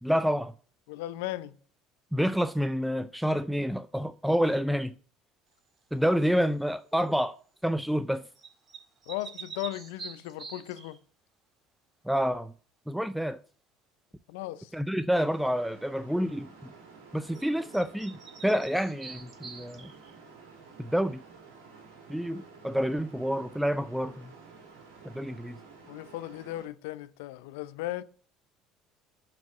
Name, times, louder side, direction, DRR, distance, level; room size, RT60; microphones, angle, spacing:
voice 1, 0.0-0.5 2.1-4.9 5.9-7.3 7.6-8.2 12.1-12.5 12.9-13.4 14.7-16.5 17.1-19.9 20.8-21.2 22.1-24.3 25.0-25.6, equal, 5° right, 0.4 m, -28 dB
voice 2, 0.9-1.5 9.1-11.0 14.3-14.7 25.9-28.0, left 15 dB, 75° left, 0.5 m, -36 dB
sound 1, 6.2-6.5 8.4-11.0 17.3-17.5 17.7-20.2, right 5 dB, 40° right, 1.9 m, -45 dB
sound 2, 15.1-26.7, right 4 dB, 80° right, 2.1 m, -52 dB
7.4 x 4.6 x 6.3 m
hypercardioid pair, 65°, 0 cm